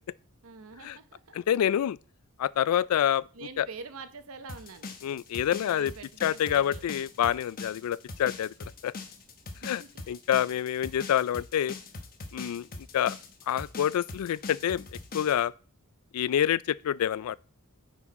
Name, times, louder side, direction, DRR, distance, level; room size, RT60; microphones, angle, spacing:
voice 1, 0.4-1.4 3.3-4.9 5.7-6.8 9.6-10.2, right 4 dB, 70° right, 0.9 m, -45 dB
voice 2, 1.3-2.0 2.4-3.2 3.6-3.7 5.0-5.9 6.2-8.5 8.8-8.9 9.6-11.8 12.3-12.7 12.9-13.2 13.5-14.8 15.1-15.5 16.1-17.4, left 10 dB, 80° left, 0.3 m, -27 dB
sound 1, 4.5-15.4, left 3 dB, 45° left, 1.0 m, -41 dB
9.7 x 4.7 x 4.1 m
head